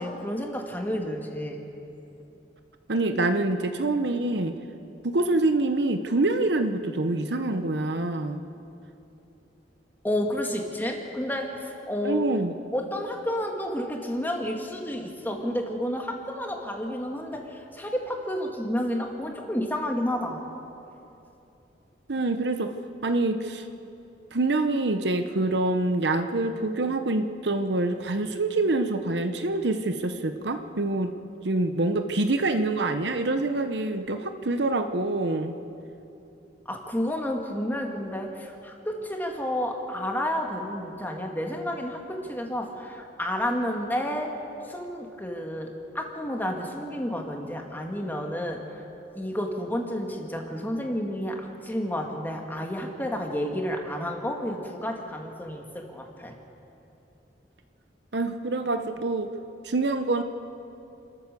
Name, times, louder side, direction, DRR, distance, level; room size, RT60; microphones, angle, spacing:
voice 1, 0.0-1.6 10.0-12.3 12.7-20.4 36.7-44.3 44.7-48.8 49.1-56.3, left 1 dB, 10° left, 2 dB, 2.1 m, -31 dB
voice 2, 2.9-4.5 5.0-8.4 12.0-12.5 22.1-22.7 23.0-23.7 24.3-31.1 31.4-35.5 58.1-59.3 59.6-60.2, right 2 dB, 70° right, 8 dB, 1.0 m, -26 dB
29.0 x 13.5 x 6.9 m, 2.9 s
head